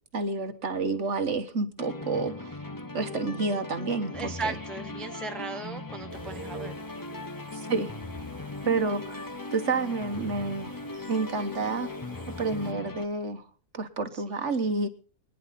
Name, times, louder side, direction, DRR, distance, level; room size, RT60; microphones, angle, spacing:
voice 1, 0.1-2.6 2.9-4.6 7.5-7.9 8.6-10.8 11.1-11.9 12.4-13.5 13.7-14.9, right 3 dB, 50° right, 8 dB, 1.4 m, -29 dB
sound 1, 1.8-13.1, left 2 dB, 35° left, 0.3 m, -39 dB
voice 2, 4.0-6.7 14.3-14.5, right 3 dB, ahead, 6 dB, 1.0 m, -37 dB
sound 2, 6.1-12.7, right 4 dB, 35° right, 1.8 m, -48 dB
25.5 x 10.5 x 4.1 m, 0.41 s
omnidirectional pair, 1.6 m